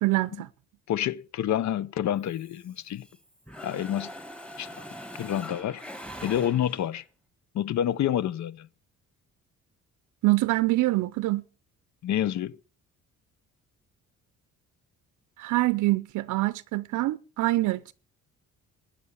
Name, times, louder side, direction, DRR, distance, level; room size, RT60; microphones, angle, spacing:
voice 1, 0.0-0.5 10.2-11.4 15.4-17.9, right 19 dB, 85° right, 0.6 m, -25 dB
voice 2, 0.9-3.1 3.6-4.1 4.6-4.7 5.2-5.8 6.2-7.0 7.5-8.7 12.0-12.5, left 11 dB, 65° left, 0.8 m, -28 dB
Mechanisms, 2.2-3.2 3.5-7.0, equal, 5° left, 1.4 m, -42 dB
12.5 x 9.9 x 7.2 m
cardioid pair, 90°, 30 cm